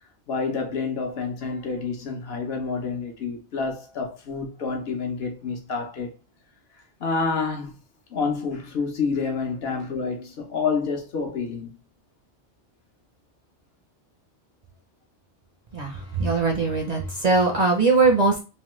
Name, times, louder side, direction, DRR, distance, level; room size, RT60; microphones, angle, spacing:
voice 1, 0.3-6.1 7.0-7.7 8.1-11.7, left 4 dB, 65° left, 0.9 m, -28 dB
voice 2, 15.7-18.4, right 4 dB, 45° right, 0.6 m, -21 dB
3.1 x 2.2 x 3.0 m
omnidirectional pair, 1.2 m